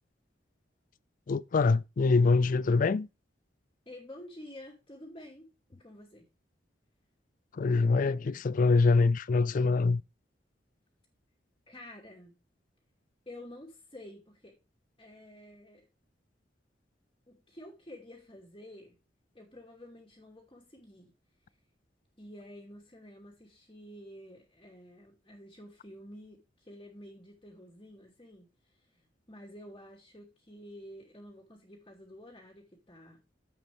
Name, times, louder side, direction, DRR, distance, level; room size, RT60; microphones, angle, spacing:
voice 1, 1.3-3.1 7.5-10.0, left 4 dB, 45° left, 0.4 m, -24 dB
voice 2, 3.9-6.3 11.7-12.3 13.3-14.6 15.0-15.9 17.3-19.0 19.3-21.1 22.2-28.5 29.0-33.2, left 1 dB, 25° left, 2.7 m, -50 dB
10.5 x 8.0 x 3.4 m
head